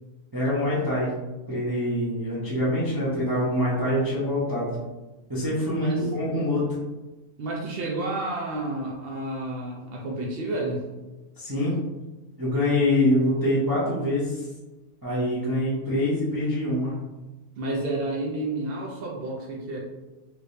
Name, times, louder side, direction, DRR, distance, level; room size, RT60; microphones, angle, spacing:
voice 1, 0.3-1.1 1.5-4.8 5.3-6.6 11.4-11.7 12.4-14.5 15.0-16.9, left 1 dB, 20° right, -8 dB, 0.5 m, -25 dB
voice 2, 7.4-10.9 17.6-19.8, right 2 dB, 80° right, -2 dB, 0.5 m, -30 dB
3.2 x 3.0 x 2.6 m, 1.1 s
omnidirectional pair, 1.6 m